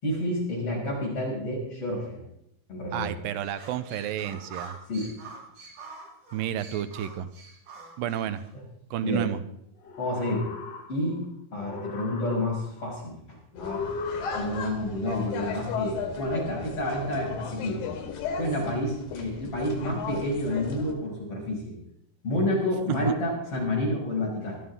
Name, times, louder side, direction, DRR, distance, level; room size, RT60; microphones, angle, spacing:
voice 1, 0.0-2.2 2.7-3.1 4.9-5.1 9.0-9.3 10.0-10.5 10.9-11.2 11.5-13.9 14.3-17.9 18.4-21.7 22.2-24.6, left 1 dB, 40° left, -4 dB, 6.9 m, -29 dB
voice 2, 2.9-4.8 6.3-7.3 8.0-8.4 8.9-9.4, right 10 dB, 90° right, 12 dB, 2.4 m, -31 dB
sound 1, 3.4-8.5, right 4 dB, 65° right, 4.6 m, -45 dB
sound 2, 9.8-11.2 11.6-12.8 13.5-14.8, left 4 dB, 60° left, 1.2 m, -37 dB
sound 3, 13.6-20.9, left 6 dB, 90° left, 3.9 m, -36 dB
20.0 x 13.0 x 3.7 m, 0.74 s
omnidirectional pair, 4.0 m